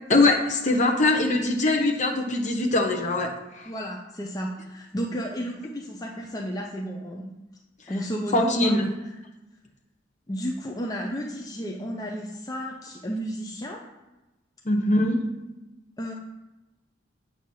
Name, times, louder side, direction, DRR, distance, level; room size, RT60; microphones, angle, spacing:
voice 1, 0.1-3.3 3.6-3.7 8.3-8.9 14.6-15.2, left 2 dB, 40° left, 1 dB, 0.9 m, -22 dB
voice 2, 3.7-7.3 7.9-8.8 10.3-13.9 16.0-16.1, equal, 20° left, 0 dB, 0.5 m, -32 dB
7.9 x 2.8 x 6.1 m, 1.0 s
head